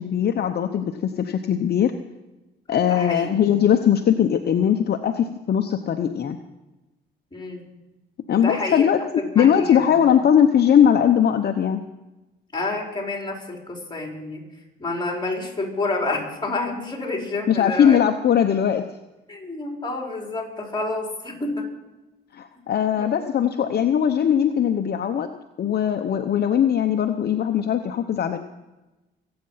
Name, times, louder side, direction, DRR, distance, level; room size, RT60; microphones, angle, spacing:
voice 1, 0.0-1.9 2.7-6.4 8.3-9.0 9.3-11.8 17.5-18.8 22.3-25.3 25.6-28.4, left 9 dB, 55° left, 7 dB, 0.9 m, -20 dB
voice 2, 2.7-3.3 7.3-7.7 8.3-8.9 9.2-9.9 12.5-14.4 14.8-18.0 19.3-21.7 23.0-23.6, left 2 dB, 20° left, 0 dB, 4.8 m, -29 dB
24.0 x 8.9 x 5.7 m, 1.0 s
cardioid pair, 90°, 20 cm